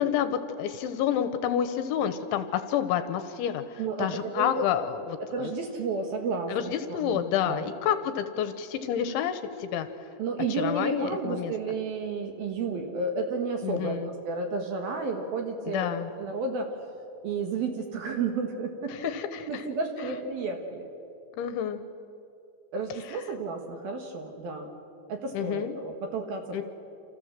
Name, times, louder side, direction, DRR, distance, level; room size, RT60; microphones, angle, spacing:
voice 1, 0.0-5.0 5.4-5.5 6.5-9.9 10.6-11.5 13.6-14.1 15.7-16.1 18.9-19.6 21.4-21.8 25.3-25.7 26.5-26.6, left 9 dB, 75° left, 10 dB, 3.1 m, -29 dB
voice 2, 3.8-4.7 5.2-7.2 7.5-7.7 10.2-15.9 16.2-16.7 17.2-19.1 19.5-20.9 22.7-24.7 25.1-26.6, right 3 dB, 60° right, 4 dB, 2.9 m, -32 dB
28.5 x 28.0 x 7.5 m, 2.6 s
omnidirectional pair, 5.9 m